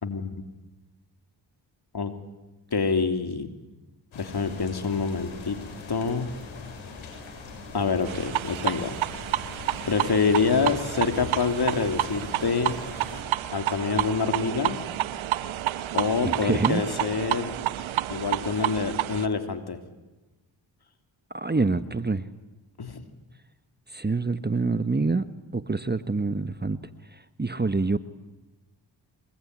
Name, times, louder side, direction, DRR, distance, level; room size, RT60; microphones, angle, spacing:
voice 1, 2.7-3.5 4.1-5.6 5.9-6.3 7.7-9.0 9.9-12.8 13.5-14.8 15.9-17.5 18.1-19.8 22.8-23.1, left 5 dB, 55° left, 8 dB, 3.1 m, -26 dB
sound 1, 4.1-13.2, left 4 dB, 80° left, 6.7 m, -41 dB
sound 2, 8.1-19.3, right 13 dB, 85° right, 0.9 m, -30 dB
voice 2, 16.2-16.8 21.3-22.2 23.9-25.3 25.5-26.8 27.4-28.0, right 3 dB, 20° right, 13 dB, 1.3 m, -26 dB
24.5 x 21.5 x 9.7 m, 1.1 s
supercardioid pair, 45°, 47 cm